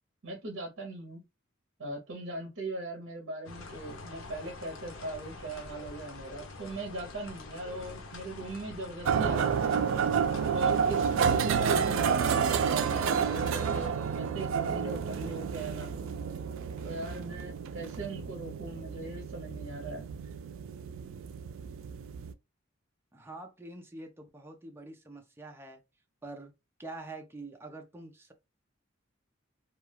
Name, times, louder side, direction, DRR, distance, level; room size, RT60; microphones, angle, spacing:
voice 1, 0.2-1.2 1.8-9.8 10.5-15.9 16.8-20.0, right 2 dB, 70° right, 0.7 m, -39 dB
sound 1, 3.5-13.9, left 3 dB, 90° left, 0.6 m, -45 dB
sound 2, 9.1-22.3, right 7 dB, 90° right, 0.3 m, -30 dB
voice 2, 23.1-25.8 26.2-26.5 26.8-28.3, right 2 dB, 10° right, 0.5 m, -45 dB
2.3 x 2.2 x 3.1 m
head